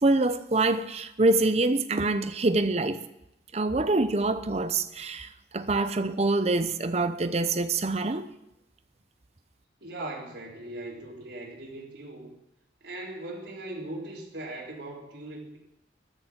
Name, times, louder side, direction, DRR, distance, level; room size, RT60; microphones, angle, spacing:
voice 1, 0.0-3.0 3.5-8.3, right 2 dB, 35° right, 0.7 m, -25 dB
voice 2, 9.8-12.3 12.8-15.6, right 2 dB, 85° right, 3.9 m, -39 dB
13.5 x 6.8 x 9.7 m
head